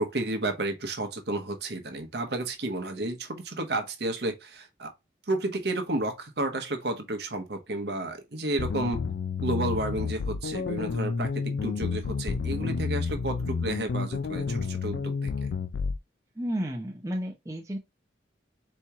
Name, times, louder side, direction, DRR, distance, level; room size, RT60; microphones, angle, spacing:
voice 1, 0.0-4.9 5.3-9.0 9.4-15.3, right 2 dB, 60° right, 1.0 m, -31 dB
sound 1, 8.6-16.0, left 5 dB, 75° left, 0.4 m, -30 dB
voice 2, 16.3-17.8, equal, 15° right, 0.7 m, -32 dB
4.4 x 2.9 x 3.5 m
head